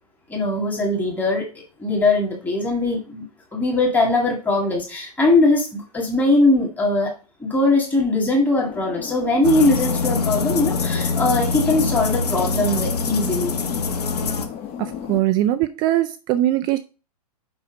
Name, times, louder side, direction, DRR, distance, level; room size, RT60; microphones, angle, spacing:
voice 1, 0.3-1.5 1.8-3.3 3.5-7.1 7.4-13.6, left 2 dB, 10° left, 2.1 m, -20 dB
sound 1, 8.6-15.2, left 8 dB, 30° left, 1.1 m, -33 dB
sound 2, 9.4-14.5, left 4 dB, 85° left, 1.2 m, -24 dB
voice 2, 14.8-16.8, right 14 dB, 20° right, 0.3 m, -21 dB
5.6 x 5.5 x 5.2 m
hypercardioid pair, 135°, 20 cm